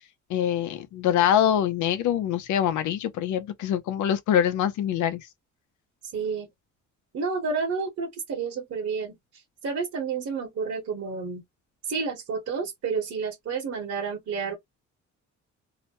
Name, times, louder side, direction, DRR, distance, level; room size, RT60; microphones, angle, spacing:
voice 1, 0.3-5.2, left 10 dB, 75° left, 0.6 m, -24 dB
voice 2, 6.1-6.5 7.1-9.2 9.6-11.4 11.9-14.6, right 5 dB, 55° right, 1.2 m, -30 dB
2.9 x 2.0 x 2.9 m
cardioid pair, 90°, 30 cm